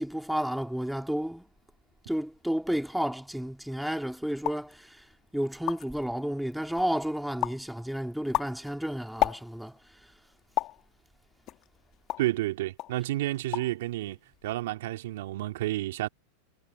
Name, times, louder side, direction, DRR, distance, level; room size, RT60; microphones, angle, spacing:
voice 1, 0.0-1.4 2.1-5.0 5.3-9.8, equal, ahead, 2.8 m, -31 dB
sound 1, 4.4-4.7 5.2-5.3 5.5-6.0 6.5-7.0 7.4-7.7 8.1-9.8 10.6-10.8 11.5-12.4 12.8-13.0 13.3-13.8 14.1-14.6, left 16 dB, 45° left, 1.6 m, -32 dB
voice 2, 12.2-14.2 14.4-16.1, right 16 dB, 70° right, 2.3 m, -30 dB
hypercardioid pair, 105°, 0 cm